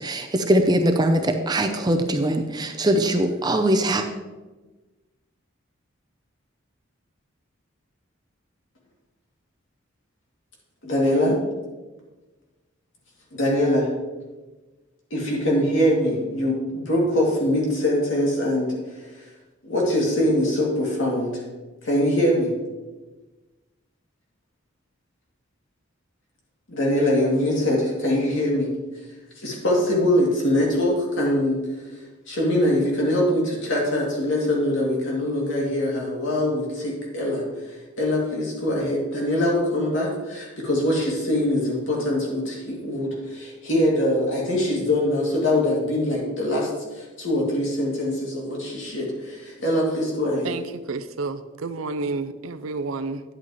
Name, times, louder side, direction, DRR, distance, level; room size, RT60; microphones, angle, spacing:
voice 1, 0.0-4.1, right 1 dB, 20° right, 6 dB, 0.6 m, -21 dB
voice 2, 10.8-11.4 13.3-13.9 15.1-18.7 19.6-21.4 21.8-22.5 26.7-28.7 29.4-31.6 32.3-37.4 38.0-50.5, left 1 dB, 70° left, -3 dB, 2.6 m, -23 dB
voice 3, 50.4-53.2, right 3 dB, 85° right, 11 dB, 0.6 m, -30 dB
10.5 x 8.4 x 3.1 m, 1.2 s
head